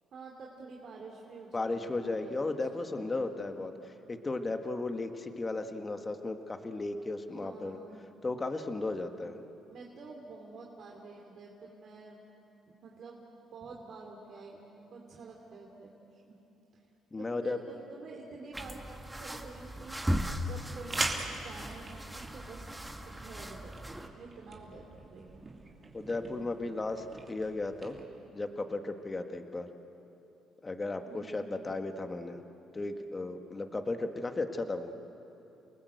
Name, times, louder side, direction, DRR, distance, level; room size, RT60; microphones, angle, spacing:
voice 1, 0.1-3.4 7.3-8.1 9.7-12.2 12.7-13.2 13.5-16.4 16.7-16.8 17.2-18.8 19.2-21.0 21.3-22.7 23.2-25.5 28.1-28.2 31.1-31.6, right 4 dB, 55° right, -1 dB, 2.8 m, -49 dB
voice 2, 1.5-7.8 8.2-9.4 17.1-17.6 25.9-28.0 28.3-29.7 30.6-32.4 32.7-34.9, left 2 dB, 25° left, 6 dB, 1.6 m, -35 dB
sound 1, 18.5-24.1, equal, 10° right, 1.7 m, -37 dB
sound 2, 19.5-28.1, right 3 dB, 30° right, 2.9 m, -43 dB
29.0 x 19.5 x 8.1 m, 3.0 s
cardioid pair, 95°, 0 cm